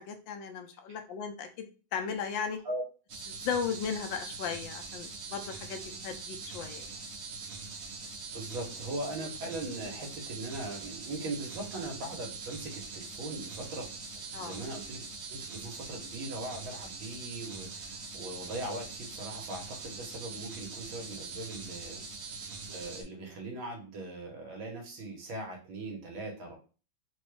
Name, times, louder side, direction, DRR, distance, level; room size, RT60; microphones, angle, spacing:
voice 1, 0.0-1.7 1.9-2.6 3.3-6.9 14.3-14.6, left 6 dB, 75° left, 6 dB, 1.3 m, -36 dB
sound 1, 3.1-23.0, right 4 dB, 60° right, 0.9 m, -43 dB
voice 2, 8.0-15.0 15.3-26.6, right 2 dB, 75° right, 1 dB, 1.8 m, -40 dB
4.0 x 2.3 x 3.1 m, 0.35 s
omnidirectional pair, 2.2 m